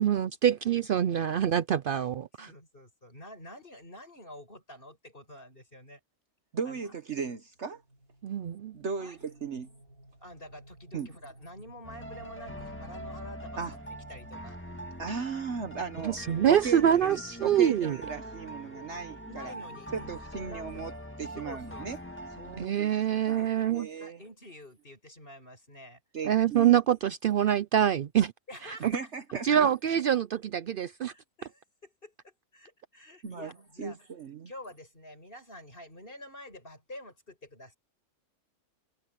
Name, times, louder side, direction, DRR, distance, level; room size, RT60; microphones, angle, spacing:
voice 1, 0.0-2.5 8.2-8.7 16.0-18.0 22.6-23.9 26.2-28.3 28.6-28.9 29.4-31.1, right 10 dB, 85° right, 0.4 m, -25 dB
voice 2, 2.4-6.0 6.6-6.9 9.0-9.2 10.2-13.8 14.1-14.6 19.3-20.2 20.5-20.9 21.3-22.4 22.7-26.0 28.5-29.0 31.1-34.1 34.4-37.8, left 1 dB, 35° left, 8.4 m, -48 dB
voice 3, 6.5-7.8 8.7-9.7 10.9-11.1 13.6-13.7 15.0-16.2 16.5-19.5 19.9-22.0 22.4-22.9 23.3-24.2 26.1-26.8 28.8-29.7 33.2-33.5 33.8-34.5, right 5 dB, 55° right, 1.3 m, -37 dB
sound 1, 7.6-22.4, right 1 dB, 70° right, 8.2 m, -58 dB
sound 2, 11.8-22.7, equal, 10° left, 1.8 m, -43 dB
omnidirectional pair, 1.5 m